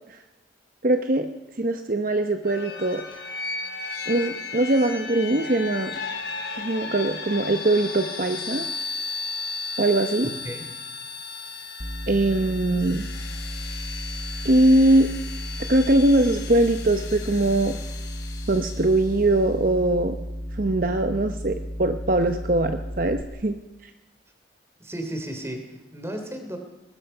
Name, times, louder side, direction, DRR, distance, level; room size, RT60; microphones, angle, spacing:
voice 1, 0.8-1.3 1.6-3.0 4.1-5.9 6.6-8.7 9.8-10.3 12.1-13.1 14.4-15.1 15.7-17.7 18.5-20.2 20.5-23.6 23.8-23.9, right 1 dB, 50° right, 7 dB, 0.9 m, -21 dB
sound 1, 2.4-19.2, left 4 dB, 70° left, 4.4 m, -35 dB
voice 2, 10.2-10.6 24.8-26.6, right 1 dB, 15° right, 5 dB, 3.2 m, -34 dB
sound 2, 11.8-23.2, equal, 10° left, 1.1 m, -34 dB
24.0 x 19.5 x 5.6 m, 1.0 s
head